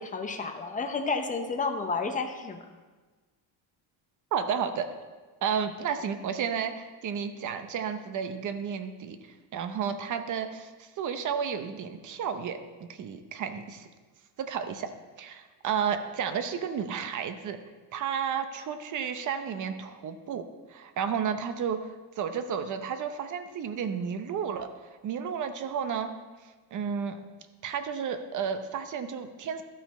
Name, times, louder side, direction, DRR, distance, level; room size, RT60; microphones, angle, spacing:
voice 1, 0.0-2.6, left 4 dB, 15° left, 5 dB, 0.6 m, -31 dB
voice 2, 4.3-4.9 5.4-9.2 9.5-13.9 14.4-14.9 15.2-17.6 17.9-24.7 25.0-26.1 26.7-27.2 27.6-29.6, right 7 dB, 40° right, 9 dB, 0.7 m, -32 dB
13.0 x 6.0 x 4.2 m, 1.3 s
cardioid pair, 160°, 47 cm